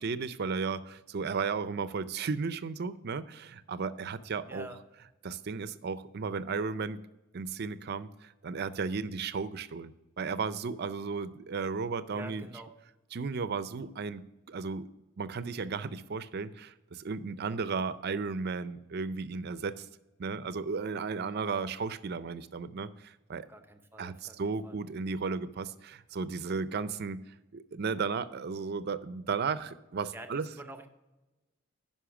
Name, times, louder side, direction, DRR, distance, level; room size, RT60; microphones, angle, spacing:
voice 1, 0.0-4.7 5.0-7.0 7.3-12.6 13.1-14.9 15.2-19.9 20.2-23.5 24.0-27.2 27.5-30.6, right 5 dB, 50° right, 14 dB, 0.5 m, -34 dB
voice 2, 4.4-4.8 12.1-12.7 23.5-24.4 24.6-24.8 30.1-30.9, right 1 dB, 10° right, 7 dB, 0.7 m, -46 dB
10.0 x 5.5 x 5.9 m, 1.0 s
head